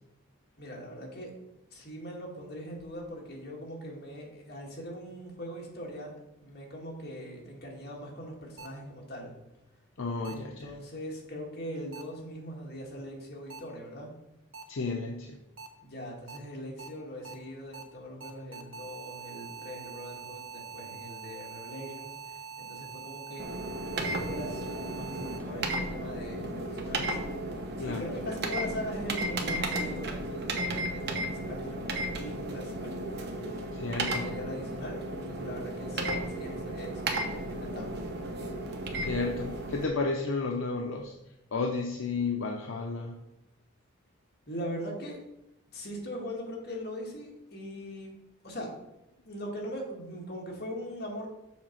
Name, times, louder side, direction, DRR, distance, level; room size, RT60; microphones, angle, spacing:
voice 1, 0.6-1.3 1.7-6.1 6.4-9.4 10.3-14.1 15.8-23.5 23.9-27.2 27.7-38.0 44.5-45.2 45.7-48.1 48.4-48.7 49.2-51.3, equal, 50° left, -2 dB, 2.0 m, -41 dB
sound 1, 8.6-8.7 10.2-10.3 11.9-12.0 13.5-13.6 14.5-14.6 15.6-15.7 16.3-16.4 16.8-16.9 17.2-17.3 17.7-17.8 18.2-25.4, right 5 dB, 75° right, 1.1 m, -44 dB
voice 2, 10.0-10.7 14.7-15.4 27.8-28.1 33.7-34.3 39.0-41.2 41.5-43.2, left 3 dB, 70° left, 2 dB, 0.7 m, -32 dB
sound 2, 23.4-39.8, right 1 dB, 55° right, 1.0 m, -34 dB
7.2 x 4.1 x 5.9 m, 0.89 s
head